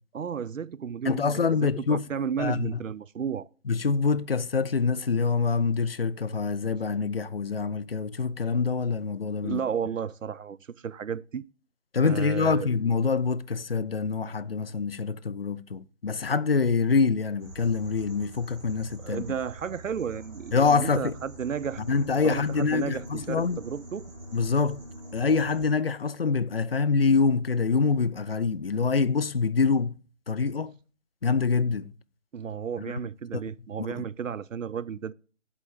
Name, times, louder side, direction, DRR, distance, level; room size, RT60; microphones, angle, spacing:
voice 1, 0.1-3.5 9.4-10.6 10.8-11.4 12.0-12.7 19.0-21.8 22.2-24.0 32.3-35.1, right 7 dB, 85° right, 0.5 m, -33 dB
voice 2, 1.0-2.1 2.4-2.7 3.7-9.6 11.9-19.2 20.5-21.1 21.9-23.6 24.3-24.8 25.1-30.0 30.3-30.7 31.2-31.9 32.9-33.0 33.3-33.4 33.9-34.0, left 5 dB, 50° left, 0.4 m, -25 dB
sound 1, 17.4-25.7, right 2 dB, 20° right, 2.7 m, -45 dB
10.5 x 8.2 x 3.5 m
figure-of-eight pair, 150°, 38 cm